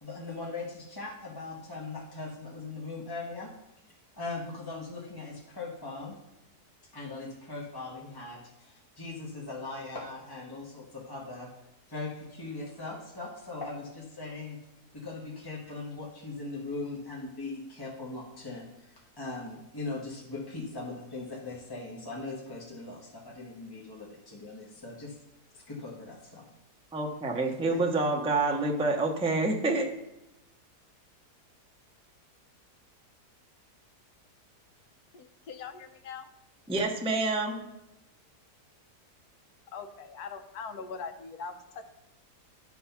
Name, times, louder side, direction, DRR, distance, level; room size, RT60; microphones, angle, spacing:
voice 1, 0.0-3.5 4.1-6.2 6.9-11.5 11.9-14.6 14.9-25.1 25.5-26.4 27.3-28.1, left 3 dB, 15° left, -4 dB, 0.9 m, -40 dB
voice 2, 26.9-29.9 36.7-37.6, right 2 dB, 10° right, 1 dB, 0.4 m, -27 dB
voice 3, 35.1-36.3 39.7-41.8, left 5 dB, 70° left, 6 dB, 1.3 m, -41 dB
11.5 x 3.9 x 5.7 m, 0.91 s
omnidirectional pair, 1.8 m